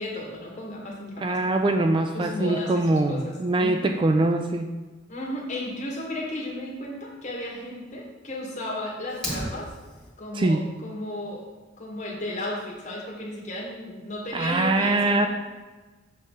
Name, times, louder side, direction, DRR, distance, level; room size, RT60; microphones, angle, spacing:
voice 1, 0.0-3.9 5.1-9.7 10.2-11.5 11.8-15.3, left 1 dB, 35° left, -2 dB, 1.6 m, -34 dB
voice 2, 1.2-4.7 10.3-10.6 14.3-15.3, right 2 dB, 25° right, 6 dB, 0.3 m, -23 dB
Fire, 9.1-10.1, equal, 5° left, 1.7 m, -33 dB
7.2 x 3.9 x 5.5 m, 1.3 s
head